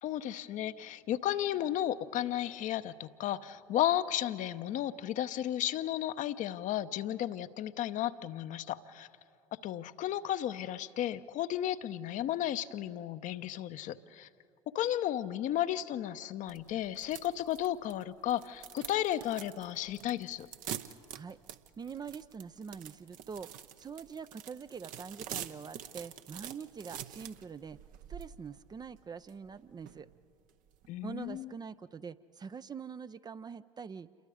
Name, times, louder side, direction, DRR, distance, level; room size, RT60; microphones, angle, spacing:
voice 1, 0.0-9.1 9.5-14.3 14.7-20.5 30.9-31.5, left 12 dB, 50° left, 11 dB, 0.8 m, -34 dB
sound 1, 16.5-31.4, right 10 dB, 55° right, 0.9 m, -47 dB
voice 2, 21.8-23.5 23.8-27.8 28.1-30.1 31.0-34.1, right 6 dB, 25° right, 13 dB, 0.5 m, -44 dB
28.0 x 22.5 x 5.0 m, 2.2 s
hypercardioid pair, 70°, 17 cm